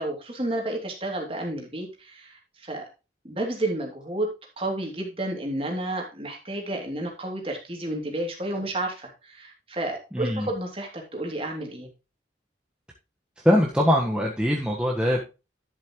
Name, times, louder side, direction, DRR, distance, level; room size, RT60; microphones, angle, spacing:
voice 1, 0.0-2.9 3.2-11.9, right 1 dB, 30° right, 1 dB, 2.9 m, -31 dB
voice 2, 10.1-10.5 13.4-15.2, equal, 5° right, -2 dB, 1.4 m, -22 dB
11.5 x 7.4 x 3.1 m, 0.29 s
head